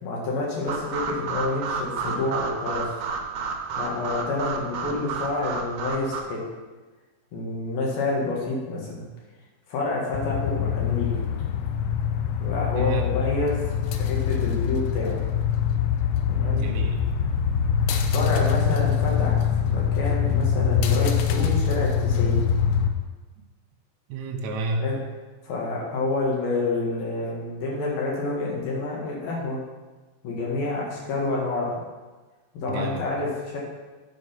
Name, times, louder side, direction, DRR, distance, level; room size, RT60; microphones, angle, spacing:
voice 1, 0.0-2.9 3.8-6.4 7.3-9.0 9.7-11.2 12.4-13.6 14.0-15.2 16.3-16.6 18.1-22.4 24.8-25.0 25.5-29.6 30.2-31.8 32.5-33.6, left 3 dB, 65° left, -3 dB, 3.1 m, -28 dB
sound 1, 0.7-6.2, right 5 dB, 90° right, 1.6 m, -31 dB
sound 2, 10.1-22.9, left 7 dB, 85° left, 2.7 m, -24 dB
voice 2, 12.7-13.1 16.6-17.0 24.1-24.9 32.7-33.2, right 2 dB, 70° right, 2 dB, 1.7 m, -30 dB
9.3 x 5.0 x 5.7 m, 1.3 s
omnidirectional pair, 4.9 m